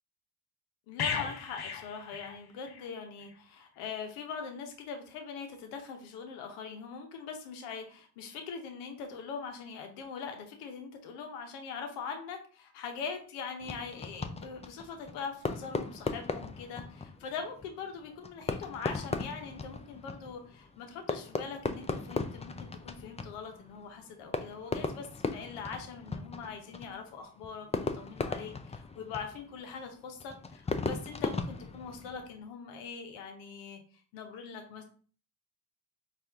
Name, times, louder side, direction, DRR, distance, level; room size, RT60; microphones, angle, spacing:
voice 1, 0.9-33.8 34.1-34.8, left 5 dB, 90° left, 5 dB, 0.9 m, -42 dB
sound 1, 1.0-2.9 3.2-3.4, left 6 dB, 50° left, 0.8 m, -36 dB
Fireworks, 13.6-32.4, left 3 dB, 15° left, 0.4 m, -38 dB
4.3 x 2.5 x 3.4 m, 0.42 s
supercardioid pair, 50°, 49 cm